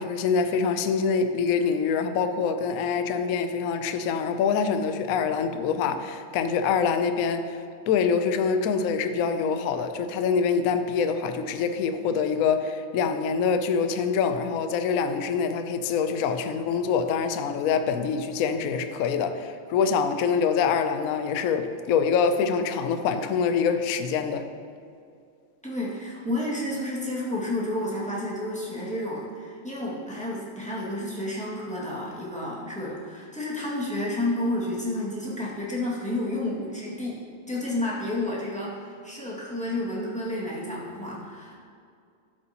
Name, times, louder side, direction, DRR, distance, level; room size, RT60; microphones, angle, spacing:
voice 1, 0.0-24.5, left 6 dB, 80° left, 0.7 m, -25 dB
voice 2, 25.6-41.6, left 1 dB, 5° left, 1.8 m, -31 dB
12.5 x 7.8 x 2.9 m
omnidirectional pair, 2.2 m